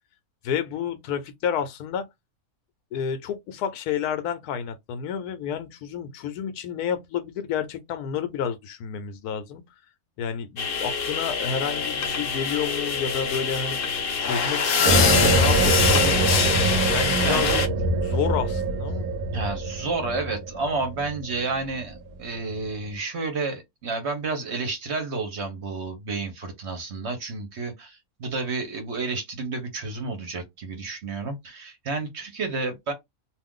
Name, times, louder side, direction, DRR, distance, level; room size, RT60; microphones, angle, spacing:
voice 1, 0.4-2.1 2.9-9.6 10.2-16.2 16.9-17.6 18.0-19.1, left 7 dB, 90° left, 1.1 m, -30 dB
sound 1, 10.6-17.7, left 6 dB, 55° left, 0.6 m, -24 dB
sound 2, 14.8-22.1, right 3 dB, 85° right, 1.1 m, -24 dB
voice 2, 19.3-32.9, right 3 dB, 55° right, 1.0 m, -31 dB
2.6 x 2.4 x 3.6 m
omnidirectional pair, 1.5 m